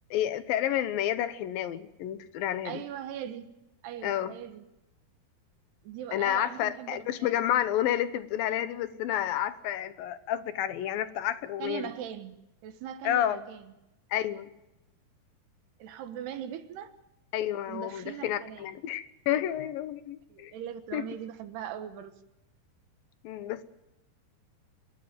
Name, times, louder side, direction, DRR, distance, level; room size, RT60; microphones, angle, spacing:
voice 1, 0.1-2.8 4.0-4.3 6.1-11.9 13.0-13.4 14.1-14.5 17.3-20.5 20.9-21.0 23.2-23.6, left 11 dB, 70° left, 13 dB, 2.6 m, -30 dB
voice 2, 2.7-3.6 3.8-4.6 5.9-7.4 11.6-12.4 12.6-13.7 15.8-16.9 17.7-18.7 20.3-22.1, right 10 dB, 80° right, 9 dB, 3.5 m, -40 dB
25.0 x 13.0 x 9.3 m, 0.92 s
omnidirectional pair, 4.6 m